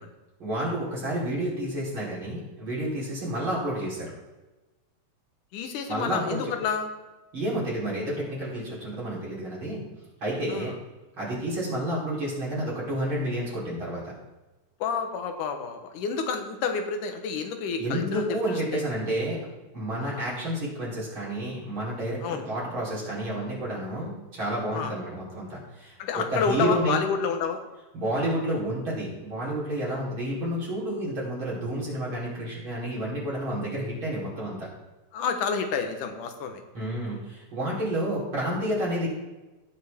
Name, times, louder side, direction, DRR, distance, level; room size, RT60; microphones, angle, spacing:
voice 1, 0.4-4.1 5.9-6.5 7.3-9.9 10.2-10.7 11.2-14.0 17.8-19.4 19.7-27.0 27.9-34.7 36.7-39.1, right 1 dB, 40° right, -7 dB, 4.3 m, -30 dB
voice 2, 5.5-6.9 10.5-10.8 14.8-18.8 20.0-20.2 22.2-22.5 24.7-24.9 26.0-27.6 29.9-30.0 35.1-36.6, left 6 dB, 90° left, 6 dB, 2.7 m, -29 dB
17.5 x 7.1 x 3.5 m, 1.1 s
omnidirectional pair, 3.5 m